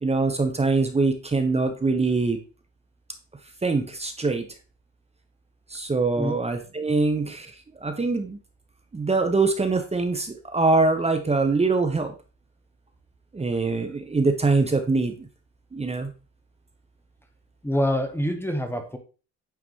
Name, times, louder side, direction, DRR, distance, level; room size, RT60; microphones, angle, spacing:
voice 1, 0.0-2.4 3.6-4.4 5.7-7.5 7.8-8.4 8.9-12.1 13.3-15.3 15.7-16.1, right 3 dB, 20° right, 6 dB, 0.9 m, -23 dB
voice 2, 17.6-19.0, equal, 10° left, 6 dB, 1.0 m, -25 dB
9.2 x 3.8 x 3.1 m, 0.35 s
cardioid pair, 90°, 30 cm